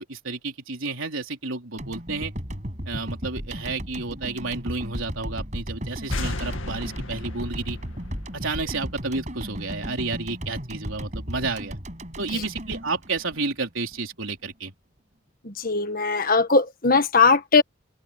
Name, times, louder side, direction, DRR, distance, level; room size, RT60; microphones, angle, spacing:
voice 1, 0.0-2.3 2.9-7.8 8.3-11.8 12.2-14.7, right 3 dB, 75° right, 3.9 m, -31 dB
sound 1, 1.8-14.0, equal, 35° right, 7.8 m, -35 dB
sound 2, 6.1-9.6, left 2 dB, 75° left, 2.1 m, -35 dB
voice 2, 15.4-17.6, left 4 dB, 45° left, 1.6 m, -20 dB
head